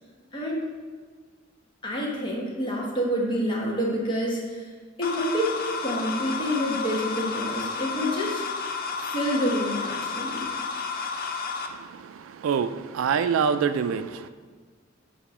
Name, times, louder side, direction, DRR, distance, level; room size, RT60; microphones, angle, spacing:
voice 1, 0.3-0.7 1.8-4.6 5.0-8.5 8.9-10.5, equal, 25° left, -2 dB, 1.1 m, -28 dB
sound 1, 5.0-11.7, left 4 dB, 50° left, 0.5 m, -31 dB
voice 2, 11.7-14.3, right 6 dB, 85° right, 10 dB, 0.3 m, -26 dB
8.3 x 2.8 x 4.8 m, 1.5 s
head